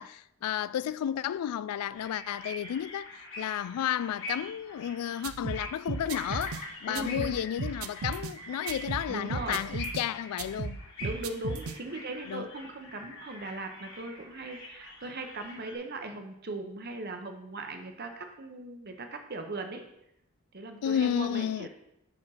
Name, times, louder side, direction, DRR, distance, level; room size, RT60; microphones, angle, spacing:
voice 1, 0.0-10.8 12.3-12.5 20.8-21.7, left 9 dB, 90° left, 0.3 m, -32 dB
sound 1, 1.9-15.8, left 1 dB, 60° left, 1.9 m, -45 dB
sound 2, 5.2-6.6 6.9-8.3 8.7-10.1 10.4-11.8, right 4 dB, 70° right, 0.5 m, -36 dB
Bird vocalization bird call bird song, 6.1-10.4, left 2 dB, 35° left, 1.2 m, -45 dB
voice 2, 6.9-7.4 9.1-9.6 11.0-19.8 20.5-21.7, right 2 dB, 45° right, 0.9 m, -39 dB
6.2 x 5.0 x 5.6 m
head